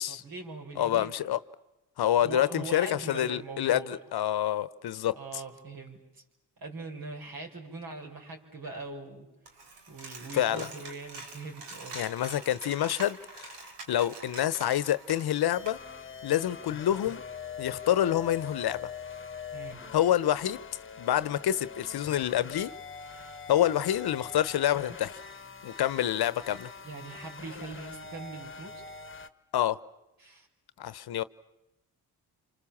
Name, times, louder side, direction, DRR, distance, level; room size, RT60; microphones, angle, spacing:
voice 1, 0.1-1.1 2.2-4.0 5.1-6.2 6.6-9.3 9.9-12.0 19.5-19.8 26.8-28.8 30.2-30.5, right 3 dB, 60° right, 5.6 m, -42 dB
voice 2, 0.8-1.4 2.0-5.4 10.3-10.7 11.9-13.5 13.9-15.8 16.2-17.2 17.6-18.8 19.9-20.6 21.0-22.7 23.5-25.1 25.6-26.7 29.5-29.8 30.8-31.2, left 11 dB, 65° left, 1.0 m, -27 dB
Coin (dropping), 9.5-15.7, right 3 dB, 85° right, 3.5 m, -45 dB
sound 1, 15.5-29.3, left 6 dB, 30° left, 1.3 m, -43 dB
28.0 x 26.0 x 7.3 m
supercardioid pair, 60°, 40 cm